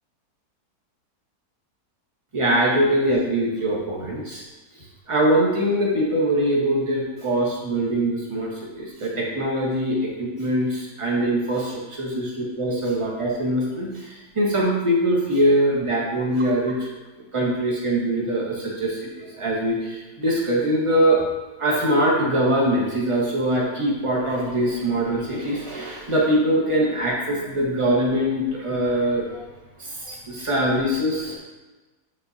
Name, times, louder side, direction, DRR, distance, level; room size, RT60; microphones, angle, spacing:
voice 1, 2.3-4.4 5.1-16.9 17.3-21.2 21.6-29.5 29.8-31.4, right 1 dB, 20° right, -4 dB, 1.1 m, -23 dB
9.1 x 3.9 x 2.7 m, 1.2 s
omnidirectional pair, 1.7 m